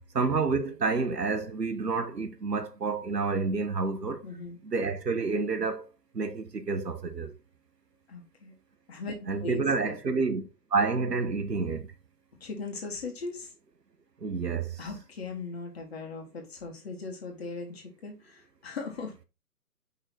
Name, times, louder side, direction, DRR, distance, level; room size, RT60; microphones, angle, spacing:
voice 1, 0.1-4.2 4.6-5.9 6.1-7.3 9.3-11.9 14.2-14.8, right 4 dB, 85° right, 1.2 m, -29 dB
voice 2, 4.2-4.6 8.1-8.5 8.9-10.0 12.4-13.5 14.8-19.2, left 3 dB, 40° left, 1.9 m, -39 dB
5.5 x 3.9 x 4.4 m
figure-of-eight pair, 145°, 48 cm